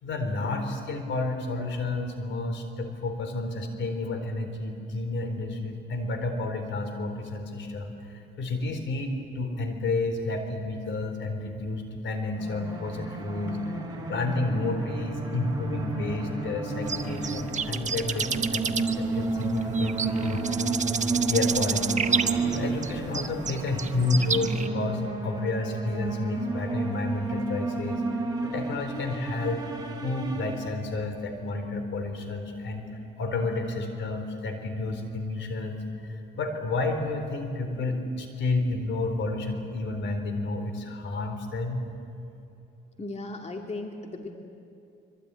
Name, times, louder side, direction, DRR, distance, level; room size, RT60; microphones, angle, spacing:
voice 1, 0.0-13.6 14.0-20.8 21.3-22.1 22.5-28.0 28.4-29.6 30.0-32.9 33.2-41.8, left 2 dB, 70° left, 7 dB, 3.9 m, -30 dB
sound 1, 12.3-31.1, right 3 dB, 20° right, 6.0 m, -32 dB
sound 2, 16.9-24.7, right 6 dB, 35° right, 1.3 m, -30 dB
voice 2, 43.0-44.4, left 2 dB, 35° left, 3 dB, 2.4 m, -36 dB
25.5 x 23.5 x 9.8 m, 2.7 s
cardioid pair, 90°, 20 cm